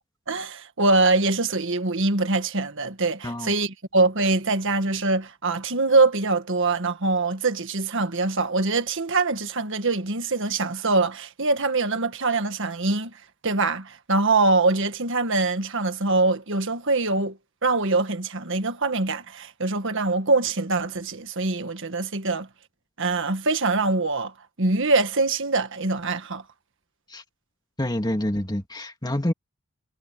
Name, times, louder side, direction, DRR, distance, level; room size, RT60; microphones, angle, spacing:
voice 1, 0.3-13.1 13.4-17.4 17.6-22.5 23.0-24.3 24.6-26.4, right 3 dB, 60° right, 1.7 m, -23 dB
voice 2, 27.8-29.3, left 1 dB, 20° left, 2.1 m, -27 dB
head